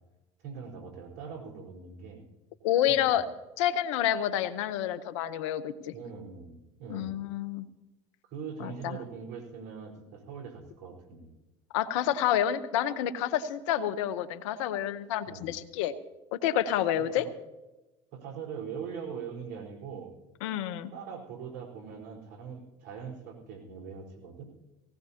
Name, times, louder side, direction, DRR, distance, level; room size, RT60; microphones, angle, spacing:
voice 1, 0.4-2.2 2.9-3.2 5.9-7.1 8.2-11.3 15.3-15.5 17.0-17.3 18.1-20.1 20.9-24.5, right 6 dB, 65° right, -1 dB, 4.4 m, -42 dB
voice 2, 2.6-3.3 3.6-5.9 6.9-7.7 8.6-9.0 11.7-15.9 16.3-17.3 20.4-20.9, left 11 dB, 80° left, 13 dB, 1.0 m, -29 dB
18.5 x 18.0 x 2.9 m, 1.0 s
hypercardioid pair, 80°, 16 cm